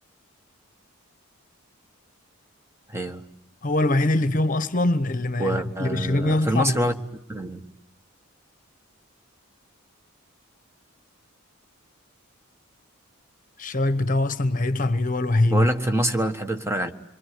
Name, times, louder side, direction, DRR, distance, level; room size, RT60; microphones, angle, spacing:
voice 1, 2.9-3.2 5.4-6.9 7.3-7.6 15.5-16.9, right 1 dB, 10° right, 1.4 m, -25 dB
voice 2, 3.6-6.9 13.6-15.7, left 2 dB, 40° left, 1.1 m, -23 dB
27.0 x 23.5 x 9.5 m
head